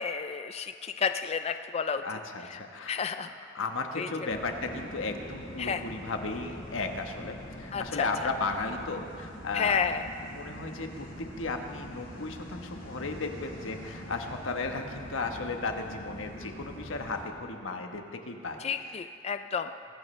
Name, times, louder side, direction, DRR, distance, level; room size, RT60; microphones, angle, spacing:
voice 1, 0.0-2.0 2.5-2.6 2.9-3.3 4.0-4.1 5.6-5.8 7.7-8.1 9.5-10.0 18.6-19.7, left 6 dB, 30° left, 9 dB, 0.3 m, -31 dB
voice 2, 2.0-3.0 3.4-9.9 10.3-11.1 11.4-18.6, left 3 dB, 90° left, 4 dB, 1.2 m, -35 dB
sound 1, 4.3-17.2, equal, 65° left, 4.6 m, -44 dB
22.0 x 14.5 x 3.3 m, 2.4 s
head